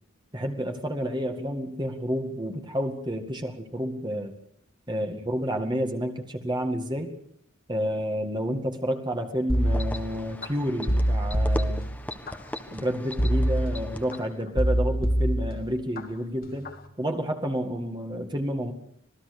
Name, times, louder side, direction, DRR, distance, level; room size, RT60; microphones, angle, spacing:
voice 1, 0.3-4.3 4.9-7.1 7.7-11.9 12.7-18.7, equal, 20° right, 4 dB, 2.1 m, -30 dB
sound 1, 9.5-10.5 10.9-12.3 13.2-14.2 14.6-16.0 16.4-16.8, equal, 45° left, 2.4 m, -25 dB
sound 2, 9.5-14.4, left 1 dB, 5° left, 1.5 m, -39 dB
26.5 x 18.5 x 6.7 m, 0.66 s
head